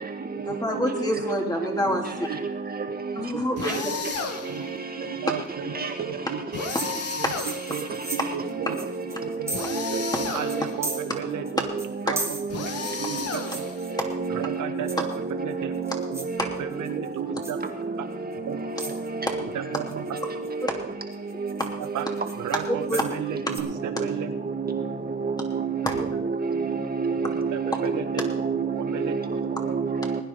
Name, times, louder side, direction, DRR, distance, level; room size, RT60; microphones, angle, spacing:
voice 1, 0.4-2.3 3.1-3.9 12.0-12.1 16.4-16.5 20.6-20.7 22.7-23.0 25.8-26.1, left 1 dB, 15° left, 1 dB, 3.2 m, -27 dB
voice 2, 3.3-3.9 4.5-4.6 5.0-6.4 7.7-7.8 8.1-8.7 9.4-10.0 10.3-11.6 12.1-12.7 13.0-13.6 14.3-15.0 15.4-15.7 16.1-16.2 16.6-17.6 18.0-18.1 18.4-18.6 19.7-20.2 21.9-22.0 22.4-24.3 27.5-28.0 28.7-29.1, right 8 dB, 80° right, 7 dB, 1.5 m, -33 dB
sound 1, 3.6-4.7 6.5-8.0 9.5-10.8 12.5-13.9, left 5 dB, 55° left, 1.7 m, -33 dB
sound 2, 6.7-9.9 10.1-10.2 10.5-11.5 11.8-14.3 14.9-15.3 15.7-16.4 16.7-17.1 17.4-17.7 18.3-18.4 18.8-19.1 19.7-20.6 21.1-23.2 23.5-23.6, right 2 dB, 10° right, 2.3 m, -36 dB
voice 3, 14.1-14.9 15.6-16.0 24.6-24.8 25.4-25.8 26.4-28.7 29.4-30.2, right 5 dB, 30° right, 4 dB, 2.1 m, -28 dB
20.0 x 9.9 x 4.0 m, 0.66 s
cardioid pair, 90°, 30 cm